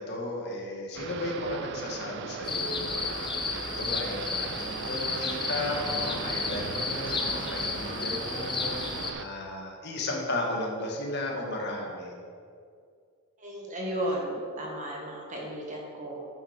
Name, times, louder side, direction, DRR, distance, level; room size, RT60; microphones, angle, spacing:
voice 1, 0.0-8.7 9.1-12.1, left 2 dB, 50° left, -1 dB, 1.7 m, -34 dB
sound 1, 0.9-9.3, right 7 dB, 50° right, 0.3 m, -38 dB
sound 2, 2.4-9.1, left 4 dB, 20° left, 0.8 m, -33 dB
voice 2, 13.4-16.3, right 1 dB, 35° right, -2 dB, 1.6 m, -34 dB
9.1 x 6.3 x 6.5 m, 2.2 s
head